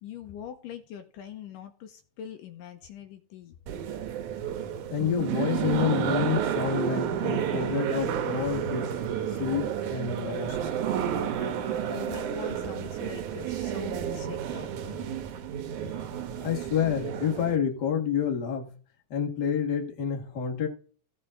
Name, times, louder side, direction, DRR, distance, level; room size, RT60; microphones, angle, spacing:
voice 1, 0.0-3.6 11.4-15.3 16.3-16.5, left 8 dB, 75° left, 2.3 m, -43 dB
sound 1, 3.7-17.6, right 9 dB, 70° right, 2.3 m, -31 dB
voice 2, 4.9-8.9 9.3-10.6 16.4-18.7 19.1-20.7, left 7 dB, 35° left, 1.9 m, -28 dB
16.0 x 5.5 x 3.7 m
omnidirectional pair, 4.1 m